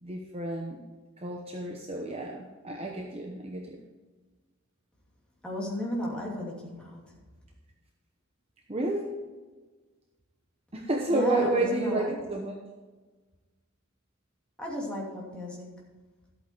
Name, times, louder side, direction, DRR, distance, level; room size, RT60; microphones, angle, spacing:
voice 1, 0.0-0.8 1.2-3.8 8.7-9.2 10.7-12.6, right 2 dB, 25° right, 1 dB, 0.9 m, -30 dB
voice 2, 5.4-7.1 11.1-12.2 14.6-15.9, left 1 dB, 5° left, -5 dB, 2.7 m, -34 dB
13.0 x 8.6 x 4.6 m, 1.3 s
head